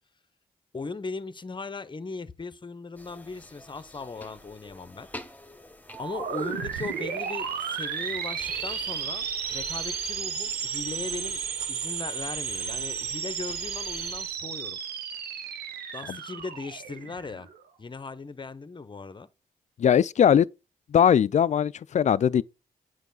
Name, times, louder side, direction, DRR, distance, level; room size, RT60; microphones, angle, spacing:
voice 1, 0.7-5.1 6.0-14.8 15.9-17.5 17.8-19.3, left 4 dB, 30° left, 0.8 m, -38 dB
sound 1, 2.9-9.0, left 1 dB, 10° left, 1.1 m, -48 dB
sound 2, 5.9-17.6, right 7 dB, 85° right, 1.0 m, -33 dB
sound 3, 8.4-14.3, right 1 dB, 10° right, 2.2 m, -42 dB
voice 2, 19.8-20.5 20.9-22.4, left 8 dB, 50° left, 0.4 m, -20 dB
8.2 x 4.8 x 3.9 m
supercardioid pair, 45°, 16 cm